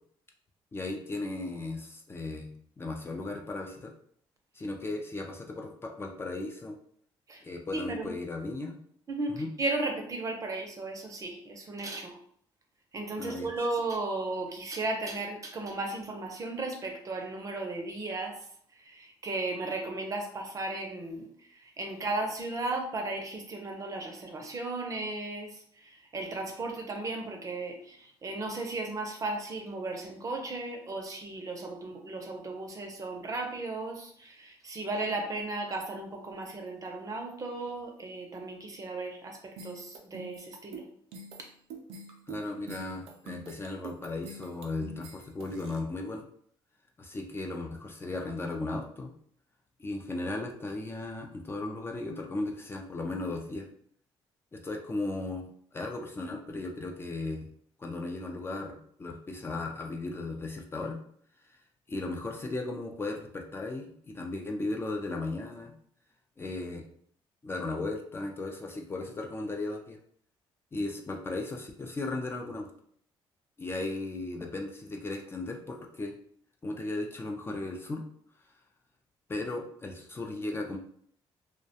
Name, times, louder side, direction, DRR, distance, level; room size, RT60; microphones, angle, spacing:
voice 1, 0.7-3.9 4.6-6.8 7.4-8.8 9.3-9.5 13.2-13.5 42.3-46.2 47.0-49.1 49.8-53.7 54.5-55.4 55.7-57.5 57.8-61.0 61.9-65.7 66.4-66.9 67.4-70.0 70.7-72.7 73.6-76.1 76.6-78.0 79.3-80.8, left 2 dB, 25° left, 1 dB, 0.4 m, -36 dB
voice 2, 7.7-8.1 9.1-12.2 12.9-18.4 18.8-21.3 21.5-40.8, right 2 dB, 35° right, 3 dB, 0.5 m, -35 dB
sound 1, 39.6-45.8, right 2 dB, 85° right, 0.4 m, -46 dB
2.3 x 2.1 x 2.7 m, 0.62 s
cardioid pair, 85°, 10 cm